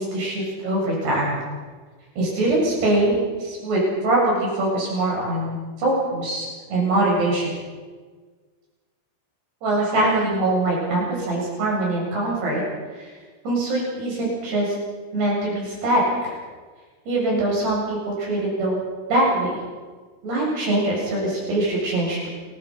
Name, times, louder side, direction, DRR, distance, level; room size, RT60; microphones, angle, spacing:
voice 1, 0.0-1.5 2.2-7.5 9.6-12.6 12.9-13.1 13.4-14.7 15.1-16.3 17.1-18.8 19.1-19.6 20.2-22.3, right 1 dB, 70° right, -3 dB, 10.0 m, -23 dB
29.5 x 23.5 x 5.7 m, 1.5 s
omnidirectional pair, 4.9 m